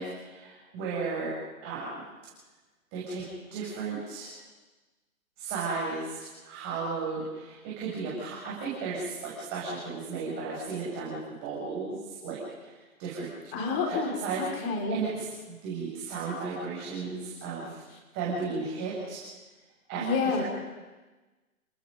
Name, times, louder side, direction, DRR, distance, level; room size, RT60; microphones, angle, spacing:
voice 1, 0.0-1.3 1.6-2.0 2.9-3.2 3.5-4.3 5.4-12.4 13.0-13.3 13.9-14.4 14.9-17.8 18.1-19.2 19.9-20.0 20.4-20.5, right 4 dB, 30° right, -6 dB, 7.3 m, -34 dB
voice 2, 13.5-15.0 20.0-20.4, left 4 dB, 30° left, 2 dB, 5.4 m, -29 dB
30.0 x 20.0 x 5.4 m, 1.2 s
figure-of-eight pair, 130°, 43 cm